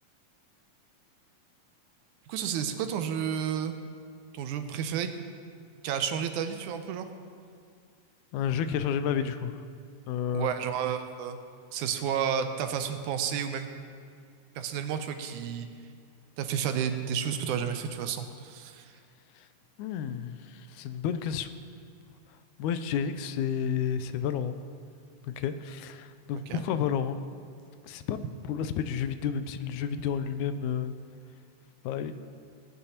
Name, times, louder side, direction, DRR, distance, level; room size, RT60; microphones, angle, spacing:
voice 1, 2.3-3.7 4.3-5.1 5.8-7.1 10.3-11.4 11.7-13.7 14.6-15.7 16.4-18.9 26.5-26.6, right 8 dB, 85° right, 8 dB, 2.1 m, -31 dB
voice 2, 8.3-9.6 10.1-10.5 19.4-19.5 19.8-21.5 22.6-24.6 25.2-27.2 27.8-28.2 28.4-30.9 31.8-32.1, left 8 dB, 80° left, 11 dB, 1.9 m, -31 dB
19.5 x 9.6 x 2.9 m, 2.2 s
omnidirectional pair, 3.5 m